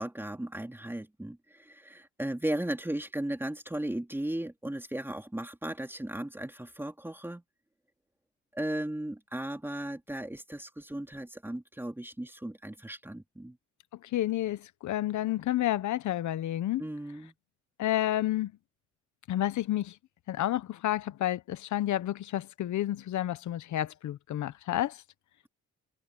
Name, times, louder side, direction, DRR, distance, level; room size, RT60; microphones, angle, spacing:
voice 1, 0.0-7.4 8.5-13.6 16.8-17.3, right 1 dB, 5° right, 3.7 m, -36 dB
voice 2, 14.0-16.8 17.8-18.5 19.3-19.9 20.3-25.0, left 13 dB, 70° left, 1.1 m, -30 dB
cardioid pair, 90°, 30 cm